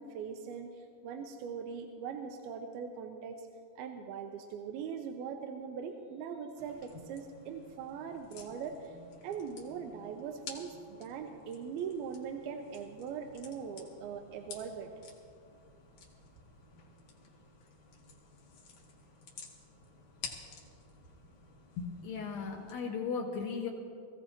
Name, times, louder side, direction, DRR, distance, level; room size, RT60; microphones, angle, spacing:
voice 1, 0.0-3.5 3.8-9.0 9.2-14.9, right 6 dB, 85° right, 5 dB, 2.6 m, -41 dB
sound 1, 6.6-22.7, left 4 dB, 60° left, 2.4 m, -52 dB
voice 2, 21.8-23.7, left 5 dB, 75° left, -1 dB, 2.7 m, -36 dB
21.0 x 15.5 x 2.9 m, 2.3 s
omnidirectional pair, 4.3 m